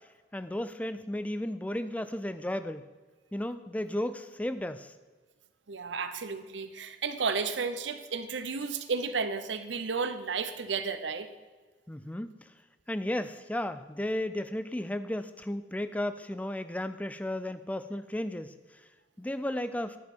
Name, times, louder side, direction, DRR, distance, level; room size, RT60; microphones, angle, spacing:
voice 1, 0.3-2.9 3.3-4.9 11.9-12.3 12.9-18.5 19.2-20.0, left 1 dB, 10° left, 11 dB, 0.4 m, -34 dB
voice 2, 5.7-11.3, right 5 dB, 75° right, 10 dB, 0.8 m, -33 dB
11.5 x 5.5 x 6.0 m, 1.4 s
head